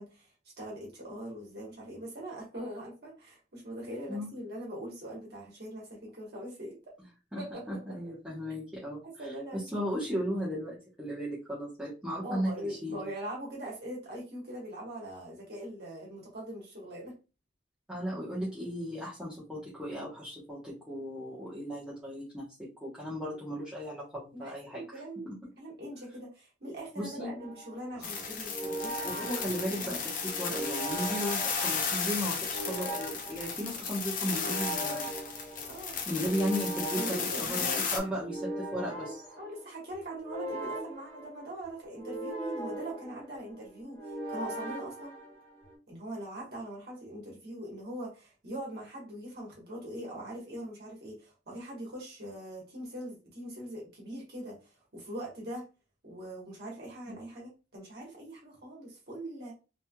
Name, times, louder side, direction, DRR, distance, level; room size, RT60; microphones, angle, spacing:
voice 1, 0.0-6.8 7.4-7.8 9.0-9.7 12.2-17.1 23.3-23.4 24.3-25.3 25.6-29.3 29.7-30.1 35.7-36.0 36.9-38.1 39.4-45.1 45.9-55.6 56.0-59.5, right 1 dB, 60° right, -3 dB, 1.3 m, -42 dB
voice 2, 7.7-9.0 9.7-13.1 17.9-25.3 27.0-27.3 28.0-28.2 29.0-35.1 36.1-39.2, equal, 5° right, -8 dB, 1.0 m, -36 dB
sound 1, 27.4-45.7, right 2 dB, 20° left, 1.6 m, -40 dB
sound 2, 28.0-38.0, left 5 dB, 45° left, 0.5 m, -34 dB
3.2 x 2.9 x 2.2 m, 0.31 s
head